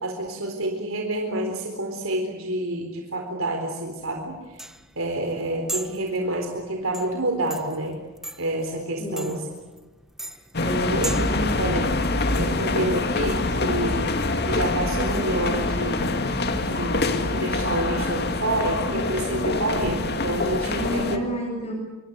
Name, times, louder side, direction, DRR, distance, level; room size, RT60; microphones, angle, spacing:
voice 1, 0.0-4.6 5.0-8.0 8.4-9.4 10.9-11.3 11.6-11.8 12.4-14.1 14.5-16.1 16.6-21.2, right 1 dB, 65° right, 3 dB, 4.0 m, -28 dB
sound 1, 4.0-11.4, right 1 dB, ahead, 1.0 m, -38 dB
voice 2, 9.0-9.5 10.5-11.7 20.6-21.7, equal, 30° left, 1 dB, 8.0 m, -30 dB
sound 2, 10.5-21.2, left 2 dB, 45° left, 2.3 m, -25 dB
27.0 x 25.0 x 8.1 m, 1.2 s
head